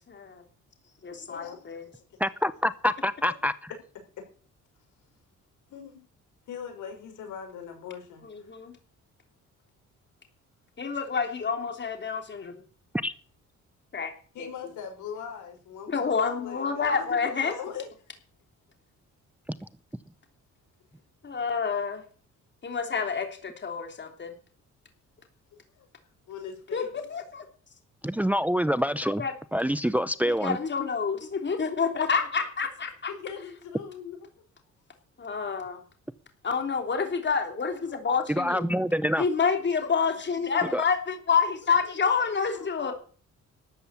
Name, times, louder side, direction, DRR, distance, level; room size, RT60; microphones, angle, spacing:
voice 1, 0.1-0.4 1.0-1.9 8.2-8.7 10.8-12.6 13.9-14.1 14.4-14.7 15.9-17.5 21.2-22.0 22.6-24.3 26.7-26.8 27.1-27.4 29.2-29.3 30.2-33.1 35.2-35.8 36.4-38.7 39.2-42.9, left 5 dB, 35° left, 3.3 m, -28 dB
voice 2, 1.3-2.2 5.7-6.0 6.5-8.5 14.3-17.9 25.5-25.9 26.3-26.9 33.1-34.2 42.3-42.9, left 7 dB, 80° left, 6.0 m, -41 dB
voice 3, 2.2-3.5 13.0-13.1 28.0-29.2 29.5-30.6 38.3-39.2 40.7-40.8, equal, 5° right, 0.7 m, -26 dB
13.0 x 7.9 x 8.4 m
cardioid pair, 90°, 30 cm